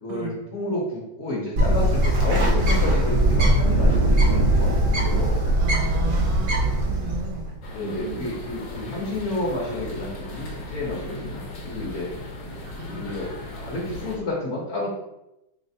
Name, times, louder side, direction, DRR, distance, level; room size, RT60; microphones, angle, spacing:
voice 1, 0.0-5.5 7.7-12.1 12.9-13.3 13.6-14.9, left 1 dB, 50° left, -4 dB, 1.0 m, -30 dB
Bird, 1.6-7.5, right 1 dB, 50° right, 0.9 m, -20 dB
voice 2, 5.6-8.3 12.6-13.0, right 5 dB, 80° right, 5 dB, 1.2 m, -35 dB
sound 1, 7.6-14.2, left 2 dB, 80° left, 1.4 m, -37 dB
4.1 x 3.2 x 2.7 m, 0.88 s
omnidirectional pair, 1.9 m